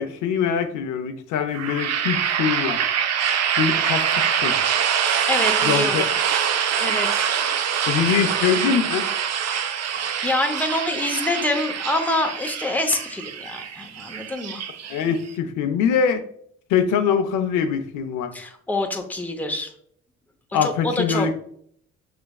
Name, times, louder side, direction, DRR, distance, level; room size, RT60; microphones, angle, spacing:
voice 1, 0.0-2.8 3.6-4.6 5.6-6.0 7.9-9.0 14.9-16.2 16.7-18.3 20.5-21.3, left 7 dB, 90° left, 7 dB, 0.6 m, -23 dB
sound 1, 1.5-15.3, right 8 dB, 60° right, 0.5 m, -24 dB
voice 2, 5.3-6.1 6.8-7.3 9.8-14.6 18.3-19.7 20.6-21.3, left 2 dB, 5° left, 3 dB, 0.7 m, -26 dB
6.0 x 3.3 x 2.3 m, 0.64 s
cardioid pair, 90°, 30 cm